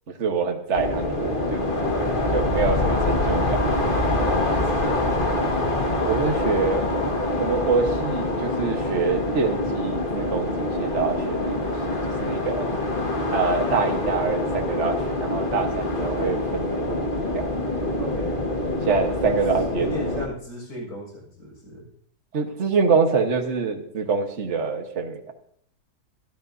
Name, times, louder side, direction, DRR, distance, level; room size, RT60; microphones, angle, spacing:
voice 1, 0.2-1.6 2.3-3.9 6.0-6.8 7.4-11.7 12.2-12.7 13.3-16.9 17.3-17.4 18.8-19.9 22.3-25.3, right 5 dB, 50° right, 3 dB, 1.7 m, -25 dB
sound 1, 0.7-20.3, left 2 dB, 30° left, 1.9 m, -25 dB
voice 2, 4.0-5.7 18.0-18.4 19.8-21.8, equal, 90° left, -2 dB, 7.0 m, -35 dB
24.0 x 13.5 x 2.8 m, 0.65 s
omnidirectional pair, 1.7 m